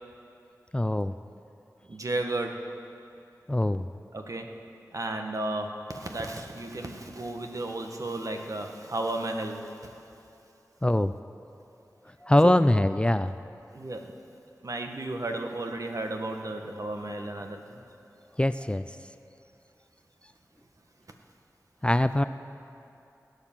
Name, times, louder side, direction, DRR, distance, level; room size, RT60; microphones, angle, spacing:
voice 1, 0.7-1.1 3.5-3.8 10.8-11.1 12.2-13.4 18.4-18.9 21.8-22.2, left 1 dB, 15° left, 12 dB, 0.4 m, -23 dB
voice 2, 1.9-2.7 4.1-4.6 4.9-9.8 12.4-12.5 13.7-14.1 14.6-17.8, right 2 dB, 60° right, 3 dB, 1.4 m, -33 dB
17.0 x 9.3 x 7.4 m, 2.8 s
wide cardioid pair, 50°, 6 cm